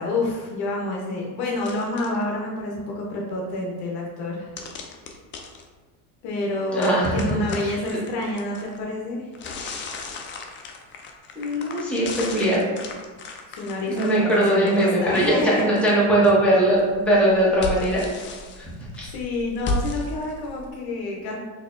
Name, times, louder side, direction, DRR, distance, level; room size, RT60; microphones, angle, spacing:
voice 1, 0.0-4.5 6.2-9.3 13.5-15.7 19.1-21.4, left 2 dB, 55° left, -2 dB, 0.9 m, -28 dB
sound 1, 1.6-2.2 4.6-5.6 6.8-8.8 9.3-16.3 16.7-20.7, left 2 dB, 30° left, 0.4 m, -35 dB
voice 2, 6.7-8.0 11.3-12.7 13.9-18.1 18.6-18.7 19.0-19.1, right 1 dB, 5° left, -8 dB, 1.3 m, -21 dB
4.2 x 2.9 x 2.5 m, 1.3 s
supercardioid pair, 105°, 46 cm